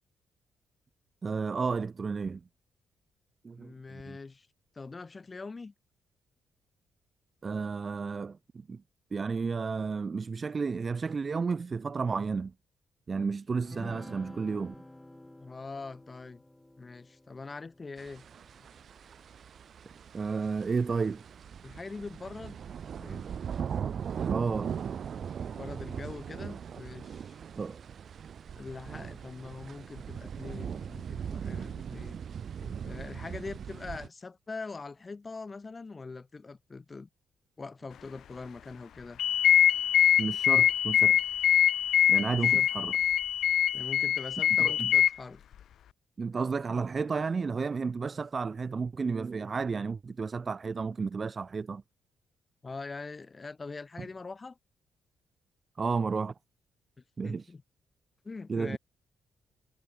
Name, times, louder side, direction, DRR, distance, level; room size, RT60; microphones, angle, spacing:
voice 1, 1.2-2.4 3.4-4.2 7.4-8.8 9.1-12.5 13.1-14.7 20.1-21.2 24.3-24.8 27.6-27.8 40.2-41.2 42.1-42.9 44.6-44.9 46.2-51.8 54.0-54.1 55.8-56.3 57.2-57.5 58.5-58.8, right 5 dB, 30° right, 0.8 m, -32 dB
voice 2, 3.6-4.5 4.7-5.7 15.4-16.4 16.8-18.2 21.6-22.6 23.0-23.3 25.5-27.4 28.5-32.2 32.6-37.1 37.6-39.2 42.3-42.7 43.7-45.4 52.6-54.6 57.2-57.6 58.2-58.8, left 4 dB, 25° left, 4.3 m, -43 dB
sound 1, 13.6-19.3, left 1 dB, 10° left, 7.2 m, -51 dB
sound 2, 18.0-34.1, right 7 dB, 50° right, 1.2 m, -39 dB
sound 3, 39.2-45.1, left 10 dB, 70° left, 0.8 m, -24 dB
cardioid pair, 130°, 0 cm